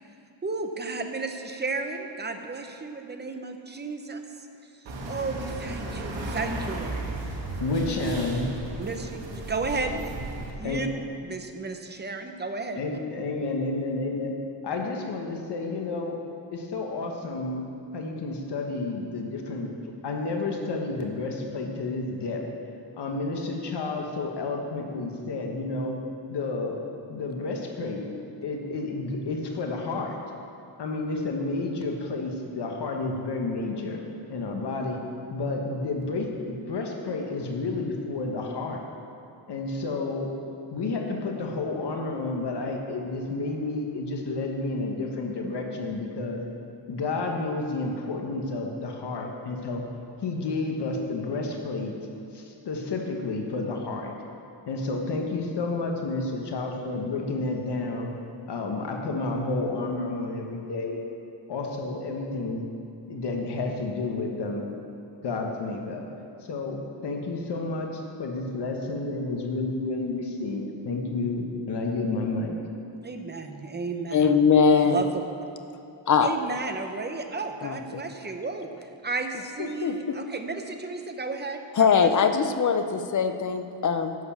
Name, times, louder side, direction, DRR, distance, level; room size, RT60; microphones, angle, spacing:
voice 1, 0.4-4.2 5.1-7.0 8.8-10.1 10.6-10.9 11.2-12.9 73.0-74.4 74.7-75.3 76.2-82.4, right 3 dB, 25° right, 5 dB, 0.8 m, -33 dB
sound 1, 4.9-10.5, right 2 dB, 90° right, 1.8 m, -34 dB
voice 2, 7.6-8.4 10.6-10.8 12.7-14.3 14.6-16.2 16.5-17.6 17.9-19.7 20.0-22.5 23.0-25.9 26.3-28.1 28.4-30.2 30.8-34.0 34.3-35.0 35.3-38.8 39.5-40.3 40.7-46.4 46.9-49.8 50.2-51.9 52.3-54.1 54.7-58.1 58.5-61.0 61.5-62.6 63.1-64.6 65.2-66.0 66.4-72.5, left 3 dB, 65° left, 1 dB, 1.3 m, -30 dB
voice 3, 74.1-75.0 76.1-76.3 77.6-78.0 79.6-80.2 81.8-84.2, left 6 dB, 45° left, 8 dB, 0.7 m, -22 dB
11.0 x 6.9 x 7.1 m, 2.7 s
wide cardioid pair, 140°, 44 cm